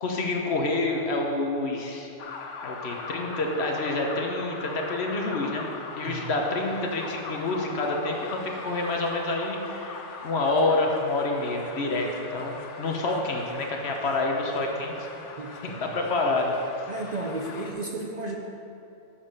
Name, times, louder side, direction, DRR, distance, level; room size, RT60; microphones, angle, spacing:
voice 1, 0.0-2.1 2.6-5.6 6.0-15.1 15.8-16.5, left 2 dB, 65° left, 1 dB, 1.2 m, -28 dB
sound 1, 2.2-17.7, left 4 dB, 85° left, 1.1 m, -40 dB
voice 2, 15.4-15.9 16.9-18.3, right 2 dB, 45° right, 1 dB, 0.6 m, -34 dB
7.2 x 6.9 x 5.4 m, 2.7 s
omnidirectional pair, 1.2 m